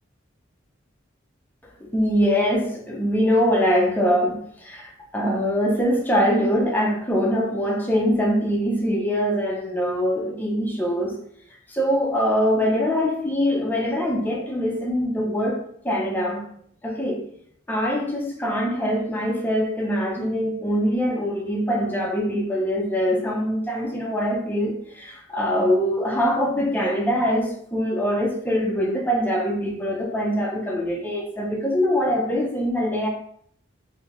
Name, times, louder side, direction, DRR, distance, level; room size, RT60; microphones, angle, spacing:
voice 1, 1.9-11.2 11.7-15.6 15.8-16.4 16.8-17.2 17.7-33.1, equal, 10° left, -1 dB, 0.5 m, -23 dB
3.2 x 2.7 x 2.9 m, 0.65 s
head